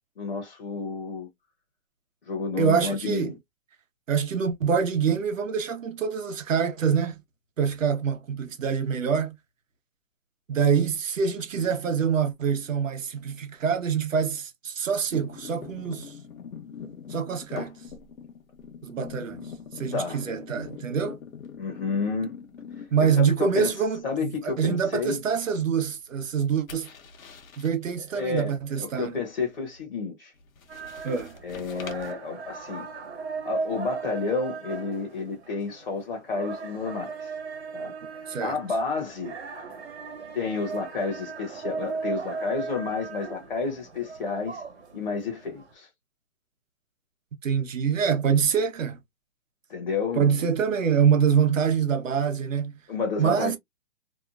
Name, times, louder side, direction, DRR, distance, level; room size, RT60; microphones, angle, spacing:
voice 1, 0.2-1.3 2.3-3.4 19.9-20.2 21.6-22.4 22.8-23.7 24.0-25.2 28.1-30.3 31.4-32.9 33.4-37.3 37.7-39.4 40.3-44.6 44.9-45.9 49.7-50.5 52.9-53.6, left 4 dB, 40° left, 0.8 m, -31 dB
voice 2, 2.6-3.3 4.1-7.2 7.6-9.3 10.5-16.1 17.1-17.8 18.8-19.4 19.8-21.2 22.9-26.9 27.6-29.1 31.0-31.3 38.3-38.5 47.4-49.0 50.2-52.7 53.2-53.6, right 7 dB, 70° right, 0.8 m, -25 dB
sound 1, 15.1-23.3 23.6-23.9 26.2-27.7 30.4-32.1, left 6 dB, 80° left, 0.9 m, -42 dB
sound 2, 30.7-45.7, right 4 dB, 50° right, 1.1 m, -37 dB
2.8 x 2.2 x 2.3 m
hypercardioid pair, 180°, 40 cm